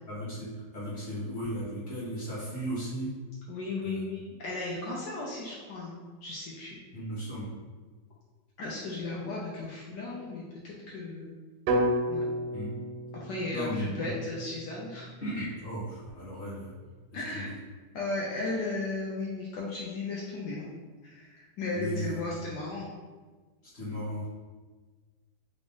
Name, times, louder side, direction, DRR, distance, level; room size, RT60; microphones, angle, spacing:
voice 1, 0.1-3.1 3.8-4.0 6.9-7.5 12.5-12.7 13.5-14.1 15.2-16.7 17.1-17.4 21.7-22.3 23.7-24.3, equal, 45° left, -9 dB, 1.1 m, -36 dB
voice 2, 3.5-6.8 8.6-11.3 12.1-12.2 13.1-15.1 17.1-17.6 17.9-20.6 21.0-22.9, left 2 dB, 75° left, -5 dB, 1.2 m, -35 dB
sound 1, 11.7-15.7, right 1 dB, 85° right, 1.3 m, -32 dB
3.5 x 2.6 x 3.5 m, 1.4 s
omnidirectional pair, 1.9 m